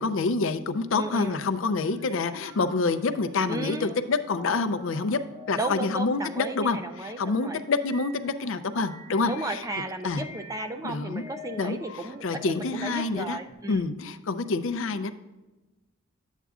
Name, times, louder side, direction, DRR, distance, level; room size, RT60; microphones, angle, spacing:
voice 1, 0.0-5.2 5.5-9.6 10.0-10.2 10.8-11.2 11.6-13.4 13.7-15.1, left 3 dB, 60° left, 11 dB, 0.5 m, -27 dB
voice 2, 0.9-1.4 3.5-4.0 5.6-7.6 9.3-13.8, right 2 dB, 15° right, 7 dB, 0.3 m, -34 dB
sound 1, 1.1-13.5, left 2 dB, 45° right, 1.7 m, -49 dB
11.0 x 8.1 x 2.4 m, 1.1 s
head